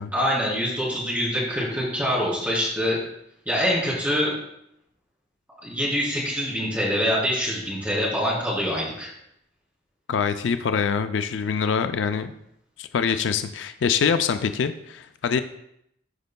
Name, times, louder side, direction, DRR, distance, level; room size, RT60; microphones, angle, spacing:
voice 1, 0.1-3.0 3.4-4.3 5.6-9.1, equal, 10° right, -7 dB, 3.2 m, -25 dB
voice 2, 10.1-12.3 12.8-15.4, left 6 dB, 75° left, 9 dB, 0.4 m, -24 dB
13.0 x 5.2 x 2.2 m, 0.76 s
head